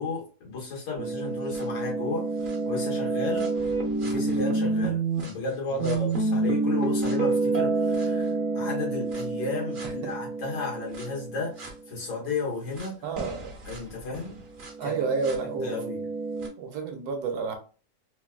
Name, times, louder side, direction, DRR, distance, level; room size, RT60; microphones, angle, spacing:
voice 1, 0.0-3.5 4.0-13.1 13.6-14.4 14.8-14.9 15.6-16.1, left 4 dB, 85° left, 2.0 m, -33 dB
sound 1, 1.0-5.3 5.8-11.7 12.8-12.9 13.2-16.5, right 3 dB, 50° right, 0.6 m, -28 dB
voice 2, 13.0-13.5 14.8-15.8 16.6-17.5, right 4 dB, 70° right, 1.1 m, -30 dB
3.9 x 2.3 x 2.2 m
omnidirectional pair, 1.9 m